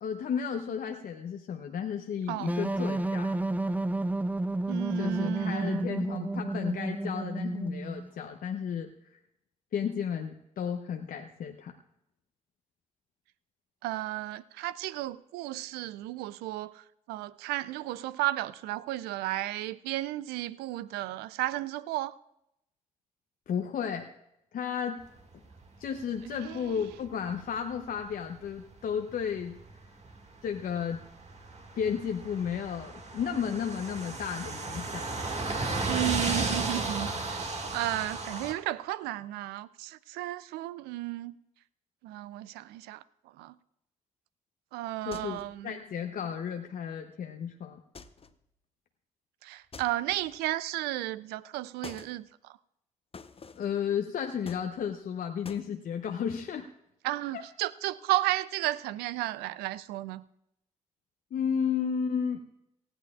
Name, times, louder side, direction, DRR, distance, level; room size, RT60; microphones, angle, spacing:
voice 1, 0.0-3.3 5.0-9.2 9.7-11.7 23.5-24.1 24.5-25.0 25.8-29.6 30.4-31.0 31.8-35.1 45.1-47.8 53.6-56.7 57.3-57.4 61.3-62.4, left 7 dB, 60° left, 0.7 m, -33 dB
sound 1, 2.4-8.1, right 2 dB, 10° right, 0.4 m, -31 dB
voice 2, 4.7-5.9 13.8-16.7 17.1-22.1 26.2-26.6 35.8-41.4 42.0-43.0 43.4-43.5 44.7-45.8 49.4-52.3 57.0-60.2, right 16 dB, 80° right, 0.4 m, -33 dB
sound 2, 25.3-27.1 27.3-27.7 28.0-28.1 28.4-28.7 29.1-30.2 30.5-38.5, right 3 dB, 45° right, 1.9 m, -34 dB
sound 3, 45.1-45.6 47.9-48.4 49.7-50.5 51.8-52.2 53.1-53.8 54.4-55.1 55.4-55.7, left 5 dB, 35° left, 0.8 m, -47 dB
19.0 x 14.0 x 2.4 m
hypercardioid pair, 40°, 16 cm